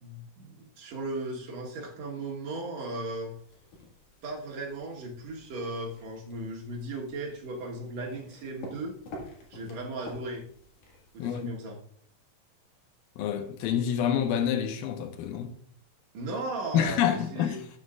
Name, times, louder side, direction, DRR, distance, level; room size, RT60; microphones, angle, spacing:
voice 1, 0.0-3.3 4.2-9.0 9.5-10.4 11.1-11.8 16.1-17.6, right 2 dB, 55° right, 2.3 m, -36 dB
sound 1, 3.3-11.5, left 1 dB, 65° left, 3.4 m, -49 dB
voice 2, 11.2-11.6 13.2-15.6 16.7-17.6, left 9 dB, 85° left, 2.5 m, -27 dB
12.5 x 7.5 x 2.4 m
omnidirectional pair, 4.1 m